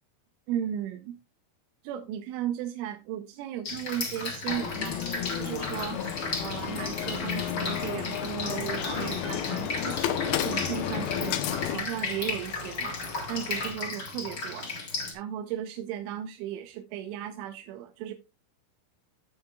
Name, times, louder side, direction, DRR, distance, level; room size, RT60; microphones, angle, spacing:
voice 1, 0.5-1.2 1.8-5.0 5.3-6.0 6.4-11.4 11.7-13.0 13.3-14.7 15.1-18.1, right 10 dB, 85° right, 3.1 m, -35 dB
Drip, 3.6-15.1, left 3 dB, 40° left, 1.5 m, -35 dB
sound 1, 4.5-11.8, left 10 dB, 80° left, 2.2 m, -32 dB
sound 2, 5.1-13.7, left 5 dB, 65° left, 2.4 m, -44 dB
17.0 x 5.8 x 2.3 m
omnidirectional pair, 5.5 m